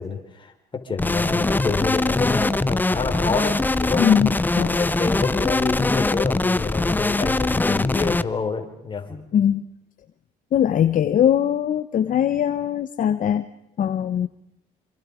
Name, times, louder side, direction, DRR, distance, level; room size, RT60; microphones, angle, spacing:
voice 1, 0.0-4.1 4.7-9.3, left 5 dB, 30° left, 4 dB, 4.2 m, -28 dB
sound 1, 1.0-8.2, left 2 dB, 10° left, 0.8 m, -22 dB
voice 2, 4.0-4.8 9.3-9.6 10.5-13.5 13.8-14.3, left 9 dB, 50° left, 10 dB, 1.1 m, -21 dB
26.5 x 26.5 x 5.2 m, 0.83 s
cardioid pair, 110°, 17 cm